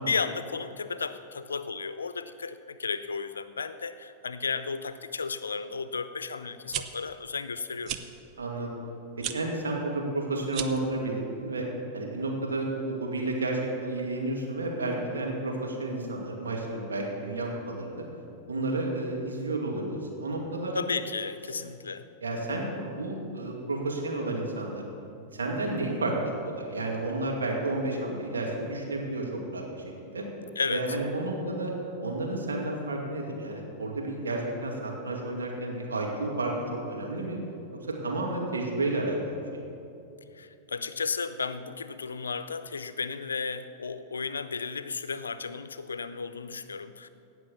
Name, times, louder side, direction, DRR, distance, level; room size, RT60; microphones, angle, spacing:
voice 1, 0.0-8.0 20.7-22.1 30.6-30.9 40.3-47.1, left 5 dB, 85° left, 12 dB, 0.6 m, -34 dB
sound 1, 6.5-6.8 7.8-8.0 9.2-9.4 10.5-10.9, right 11 dB, 45° right, 0.8 m, -33 dB
voice 2, 8.4-8.7 9.2-11.7 11.9-18.0 18.5-20.7 22.2-24.8 25.3-30.2 30.7-31.7 32.0-37.4 37.9-39.6, right 2 dB, 85° right, -1 dB, 2.4 m, -31 dB
17.0 x 6.2 x 7.1 m, 2.7 s
hypercardioid pair, 95°, 0 cm